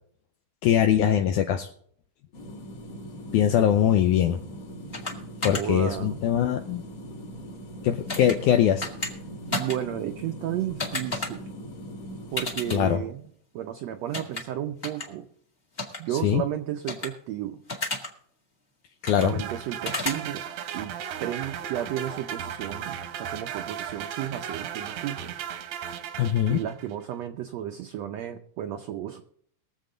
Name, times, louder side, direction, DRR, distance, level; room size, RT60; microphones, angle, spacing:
voice 1, 0.6-1.7 3.3-4.4 5.4-6.8 7.8-8.9 12.7-13.0 16.2-16.4 19.0-19.3 26.2-26.6, left 10 dB, 80° left, 6 dB, 1.9 m, -22 dB
sound 1, 2.3-13.0, equal, 50° left, 2.7 m, -41 dB
sound 2, 4.9-5.1 5.4-5.6 8.1-8.3 8.8-9.1 9.5-9.8 10.8-11.3 12.4-12.8 14.1-14.4 14.8-15.0 15.8-16.0 16.9-17.1 17.7-18.1 19.1-19.3 19.8-20.2, left 2 dB, 25° left, 1.4 m, -30 dB
voice 2, 5.5-6.3 9.5-11.5 12.3-15.3 16.0-17.6 19.1-20.4 20.7-25.4 26.5-29.2, right 11 dB, 90° right, 6 dB, 1.5 m, -33 dB
sound 3, 19.2-26.9, right 9 dB, 70° right, 1.7 m, -36 dB
22.0 x 7.5 x 3.9 m, 0.63 s
omnidirectional pair, 3.9 m